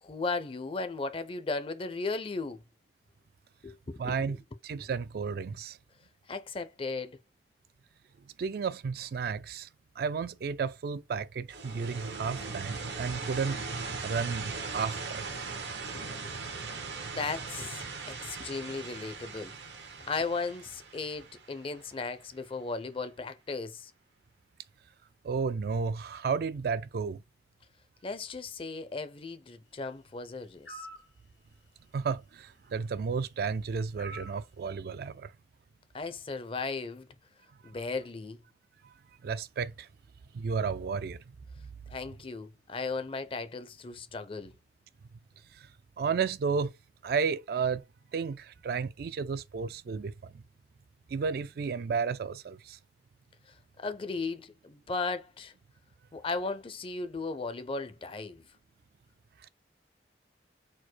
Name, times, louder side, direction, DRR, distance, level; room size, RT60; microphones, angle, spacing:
voice 1, 0.0-2.6 3.6-4.4 6.3-7.2 15.9-16.1 16.7-16.8 17.1-19.5 20.1-23.9 28.0-30.9 35.9-37.1 37.6-38.4 41.9-44.5 53.8-55.5 56.1-58.4, left 3 dB, 30° left, 0.5 m, -36 dB
voice 2, 4.0-5.8 8.4-9.7 10.0-13.6 14.0-15.2 25.2-27.2 31.9-35.3 39.2-39.9 40.3-41.4 45.5-45.7 46.0-46.7 47.0-47.8 48.1-50.4 51.1-52.8, right 5 dB, 60° right, 0.3 m, -32 dB
sound 1, 11.5-22.2, right 4 dB, 90° right, 1.0 m, -39 dB
sound 2, 30.6-31.1 34.0-34.4, right 1 dB, 85° left, 1.4 m, -44 dB
4.4 x 2.1 x 4.4 m
head